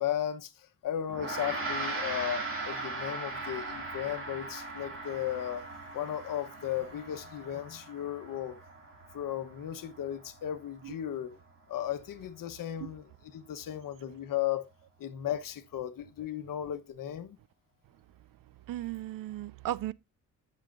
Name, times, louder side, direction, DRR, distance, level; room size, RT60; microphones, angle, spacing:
voice 1, 0.0-5.6 5.9-8.6 9.1-11.3 11.7-13.0 13.3-14.7 15.0-17.4, left 11 dB, 75° left, 1.1 m, -35 dB
Gong, 1.1-10.7, right 2 dB, 40° right, 3.2 m, -39 dB
voice 2, 18.7-19.9, right 14 dB, 80° right, 0.5 m, -36 dB
14.0 x 6.4 x 2.5 m
wide cardioid pair, 155°, 33 cm